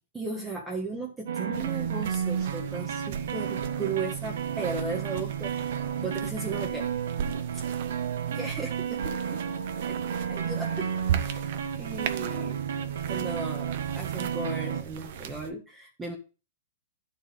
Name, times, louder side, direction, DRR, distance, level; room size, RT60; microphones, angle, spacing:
voice 1, 0.1-6.9 7.5-7.6 8.3-9.4 9.9-11.5 11.8-12.6 13.0-16.2, right 3 dB, 10° right, -1 dB, 0.9 m, -36 dB
sound 1, 1.3-14.8, right 8 dB, 80° right, 1.1 m, -32 dB
sound 2, 1.5-15.5, right 8 dB, 55° right, 0.9 m, -38 dB
11.0 x 4.2 x 5.4 m, 0.33 s
hypercardioid pair, 160°, 0 cm